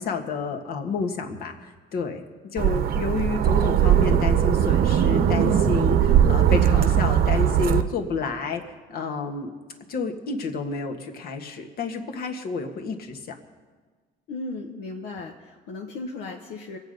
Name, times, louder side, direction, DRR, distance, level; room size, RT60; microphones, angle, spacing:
voice 1, 0.0-2.2 2.5-8.6 8.9-9.6 9.9-13.4, left 4 dB, 65° left, 4 dB, 1.6 m, -30 dB
sound 1, 2.6-7.8, right 9 dB, 65° right, 0.8 m, -19 dB
voice 2, 14.3-16.8, left 3 dB, 80° left, 1 dB, 1.1 m, -36 dB
23.5 x 8.3 x 5.3 m, 1.4 s
cardioid pair, 110°, 17 cm